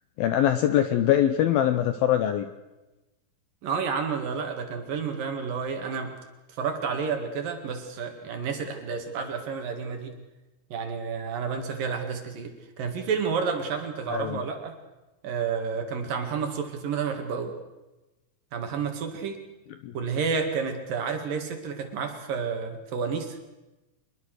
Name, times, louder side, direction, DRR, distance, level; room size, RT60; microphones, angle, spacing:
voice 1, 0.2-2.5 14.1-14.4 19.8-19.9, left 11 dB, 75° left, 9 dB, 2.3 m, -23 dB
voice 2, 3.6-6.1 6.5-10.1 10.7-14.7 15.2-17.5 18.5-19.4 19.9-23.4, right 6 dB, 55° right, 5 dB, 3.4 m, -30 dB
24.5 x 21.5 x 6.6 m, 1.1 s
omnidirectional pair, 5.2 m